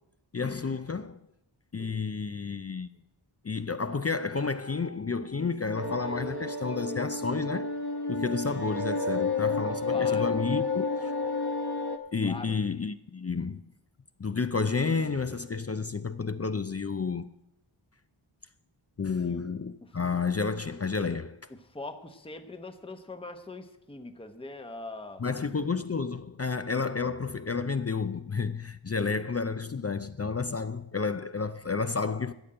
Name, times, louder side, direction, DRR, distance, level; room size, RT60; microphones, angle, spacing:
voice 1, 0.3-1.2 1.7-2.9 3.4-7.8 8.1-11.1 12.1-13.6 14.2-17.3 19.0-21.5 25.2-32.3, left 4 dB, 30° left, 0.4 m, -31 dB
sound 1, 5.8-12.0, left 3 dB, 50° left, 1.2 m, -30 dB
voice 2, 9.9-10.4 12.2-12.6 19.2-19.4 19.8-20.2 21.5-25.2, left 2 dB, 10° left, 0.9 m, -42 dB
13.0 x 5.2 x 8.7 m
wide cardioid pair, 50°, 49 cm